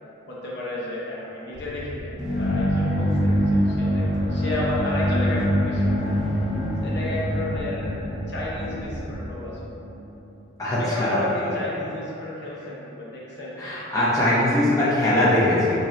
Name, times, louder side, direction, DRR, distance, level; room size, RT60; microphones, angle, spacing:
voice 1, 0.3-6.1 6.8-9.7 10.6-13.6, left 1 dB, 55° left, -6 dB, 0.7 m, -32 dB
sound 1, 1.5-9.3, equal, 80° right, 0.7 m, -37 dB
sound 2, 2.2-9.9, equal, 5° right, 0.9 m, -24 dB
voice 2, 10.6-11.2 13.6-15.8, left 1 dB, 15° left, -10 dB, 0.6 m, -21 dB
4.3 x 2.6 x 3.1 m, 2.9 s
head